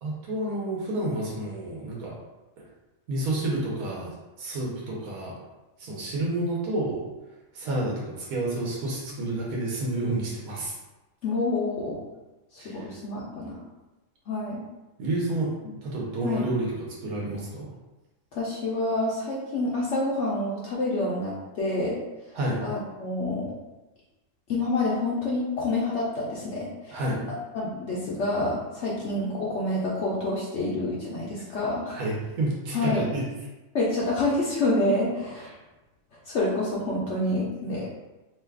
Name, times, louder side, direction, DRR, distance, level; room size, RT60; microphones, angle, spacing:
voice 1, 0.0-2.2 2.6-2.7 3.1-5.3 5.8-7.0 7.5-10.7 12.6-12.9 15.0-15.5 15.8-16.7 17.0-17.7 22.3-22.6 26.9-27.2 31.9-33.2, right 2 dB, 85° right, -3 dB, 1.3 m, -29 dB
voice 2, 11.2-12.0 12.5-13.6 14.3-14.6 16.2-16.5 18.3-22.0 22.6-23.5 24.5-27.0 27.5-32.0 32.7-33.1 33.7-35.5 36.3-37.9, left 2 dB, 65° left, -5 dB, 0.8 m, -28 dB
3.0 x 2.3 x 3.3 m, 1.1 s
omnidirectional pair, 1.4 m